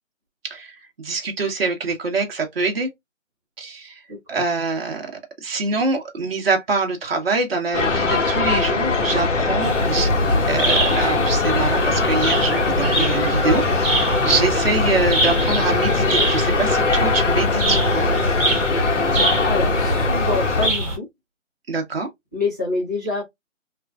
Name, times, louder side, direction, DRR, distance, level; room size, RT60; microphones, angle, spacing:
voice 1, 0.4-2.9 3.6-4.0 4.3-5.1 5.4-18.1 21.7-22.1, right 3 dB, 50° right, 1.0 m, -24 dB
voice 2, 4.1-4.4 19.4-21.1 22.3-23.2, left 3 dB, 15° left, 0.7 m, -26 dB
sound 1, 7.7-20.7, left 3 dB, 65° left, 1.2 m, -21 dB
sound 2, 9.6-21.0, right 1 dB, 15° right, 1.3 m, -24 dB
3.6 x 2.5 x 2.3 m
figure-of-eight pair, 165°, 39 cm